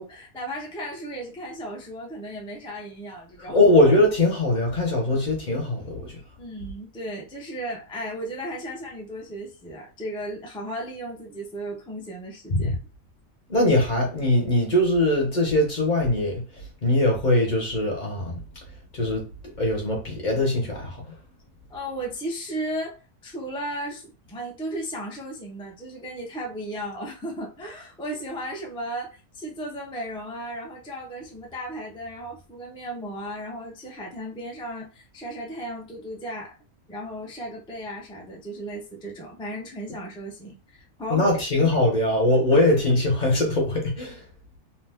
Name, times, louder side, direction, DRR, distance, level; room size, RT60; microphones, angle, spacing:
voice 1, 0.0-3.6 5.1-5.2 6.4-12.8 21.7-36.5 36.9-41.3 42.5-42.6, right 1 dB, 10° left, 0.3 m, -35 dB
voice 2, 3.5-6.2 12.5-12.7 13.5-16.4 16.8-18.4 18.9-19.3 19.6-21.1 41.1-44.2, left 1 dB, 40° left, 0.8 m, -21 dB
2.8 x 2.1 x 3.4 m
omnidirectional pair, 1.4 m